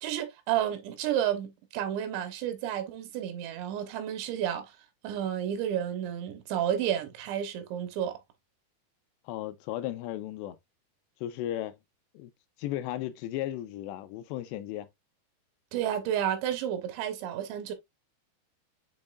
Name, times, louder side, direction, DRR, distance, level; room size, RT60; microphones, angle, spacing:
voice 1, 0.0-4.7 5.0-8.2 15.7-17.7, right 10 dB, 80° right, 3.5 m, -31 dB
voice 2, 9.3-10.6 11.2-11.8 12.1-12.3 12.6-14.9, left 13 dB, 85° left, 2.8 m, -35 dB
7.2 x 5.4 x 2.5 m
omnidirectional pair, 5.2 m